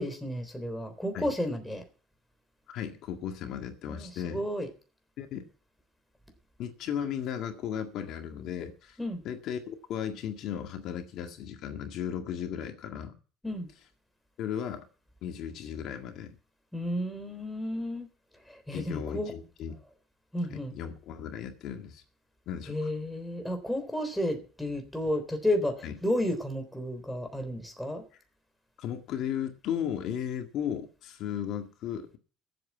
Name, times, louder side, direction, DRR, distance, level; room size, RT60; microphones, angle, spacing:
voice 1, 0.0-1.8 3.9-4.7 9.0-9.2 13.4-13.7 16.7-18.1 18.5-19.3 20.3-20.8 22.7-28.0, left 1 dB, 5° left, 5 dB, 3.5 m, -32 dB
voice 2, 2.7-4.4 5.2-5.4 6.6-9.0 9.2-13.2 14.4-14.8 15.2-16.4 18.7-19.7 20.5-22.0 22.5-22.9 25.8-26.0 28.8-32.2, left 9 dB, 65° left, 5 dB, 1.9 m, -35 dB
14.0 x 8.0 x 8.2 m, 0.40 s
cardioid pair, 110°, 0 cm